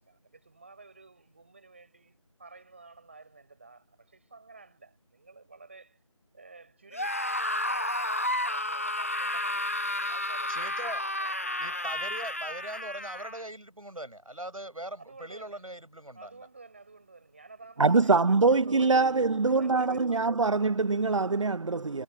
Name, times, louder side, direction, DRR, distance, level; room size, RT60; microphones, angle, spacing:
voice 1, 0.0-6.0 6.3-9.7 10.1-11.8 15.0-15.6 16.1-20.2, right 3 dB, 20° right, 4.6 m, -52 dB
Screaming, 6.9-13.4, left 1 dB, 25° left, 1.0 m, -31 dB
voice 2, 10.5-11.0 11.6-16.3, right 1 dB, 80° right, 6.0 m, -41 dB
voice 3, 17.8-22.0, right 4 dB, 60° right, 0.4 m, -24 dB
figure-of-eight pair, 170°, 18 cm